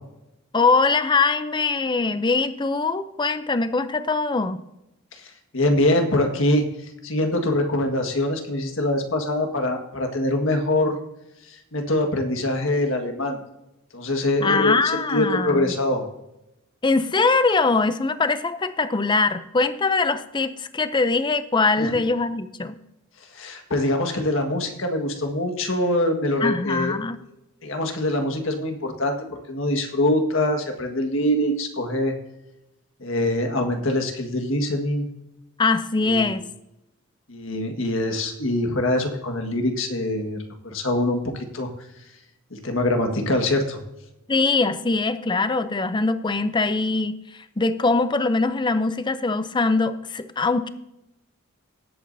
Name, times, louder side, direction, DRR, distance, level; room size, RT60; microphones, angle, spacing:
voice 1, 0.5-4.6 14.4-15.7 16.8-22.8 26.4-27.2 35.6-36.4 44.3-47.2 47.6-50.7, left 3 dB, 20° left, 12 dB, 0.5 m, -22 dB
voice 2, 5.5-6.7 7.0-11.0 11.7-13.4 13.9-14.8 15.1-16.1 21.8-21.9 23.3-26.9 27.6-29.1 29.5-32.1 33.0-35.1 36.0-36.2 37.3-40.4 40.6-41.7 42.5-43.8, left 1 dB, 70° left, 4 dB, 1.7 m, -23 dB
18.0 x 8.4 x 2.7 m, 0.90 s
head